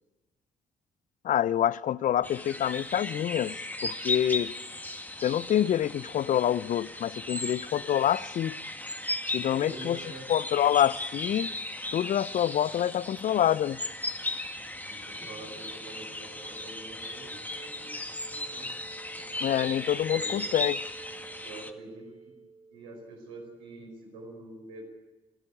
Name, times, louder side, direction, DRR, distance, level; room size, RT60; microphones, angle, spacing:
voice 1, 1.2-3.6 3.8-4.5 5.2-8.6 9.3-10.0 10.3-11.5 11.9-13.8 19.4-20.8, left 11 dB, 55° left, 0.6 m, -26 dB
sound 1, 2.2-21.7, left 2 dB, 10° left, 1.9 m, -36 dB
voice 2, 9.5-10.2 15.1-18.7 20.1-20.4 21.4-22.3 22.7-24.8, right 2 dB, 85° right, 5.0 m, -46 dB
sound 2, 15.2-23.1, right 4 dB, 30° right, 4.4 m, -51 dB
30.0 x 12.5 x 8.7 m
hypercardioid pair, 45°, 16 cm